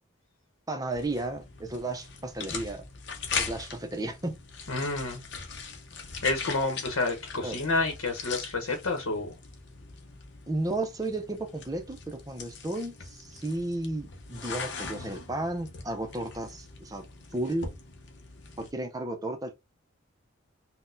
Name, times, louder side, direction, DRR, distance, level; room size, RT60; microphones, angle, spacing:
voice 1, 0.7-2.9 3.4-4.4 7.4-7.6 10.5-17.0 17.3-17.7 18.6-19.5, right 2 dB, 15° right, 0.5 m, -33 dB
sound 1, 0.9-18.7, left 5 dB, 55° left, 0.7 m, -41 dB
voice 2, 4.7-5.2 6.2-9.4, left 3 dB, 85° left, 0.9 m, -29 dB
3.9 x 2.1 x 2.6 m
head